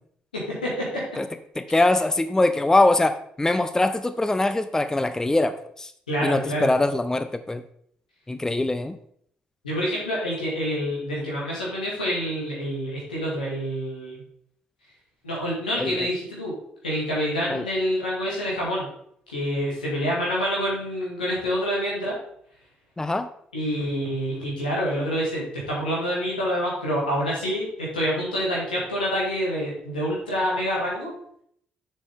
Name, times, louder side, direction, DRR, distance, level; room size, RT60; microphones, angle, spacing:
voice 1, 0.3-1.0 6.1-6.7 9.6-14.2 15.2-16.5 16.8-18.9 19.3-22.1 23.5-31.1, equal, 85° left, -5 dB, 2.1 m, -27 dB
voice 2, 1.6-5.9 6.2-7.6 8.3-9.0 15.8-15.9 17.5-17.6 23.0-23.3, left 2 dB, 15° left, 10 dB, 0.5 m, -22 dB
6.9 x 6.8 x 3.6 m, 0.69 s
figure-of-eight pair, 40°, 5 cm